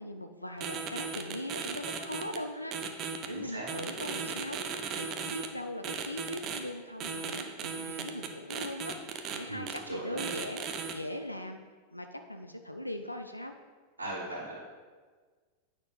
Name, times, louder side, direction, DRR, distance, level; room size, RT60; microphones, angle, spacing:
voice 1, 0.0-2.8 3.3-4.6 4.9-9.0 9.3-10.7 10.9-11.6 11.9-13.5, left 1 dB, 85° left, 6 dB, 0.5 m, -40 dB
sound 1, 0.6-2.4 2.7-3.3 3.7-5.5 5.8-6.6 7.0-9.4 9.7-9.8 10.2-10.9, right 6 dB, 35° right, 0.9 m, -36 dB
voice 2, 3.3-4.0 9.5-10.3 14.0-14.6, right 1 dB, 75° right, -3 dB, 1.9 m, -39 dB
9.1 x 6.0 x 5.3 m, 1.5 s
figure-of-eight pair, 90°, 0 cm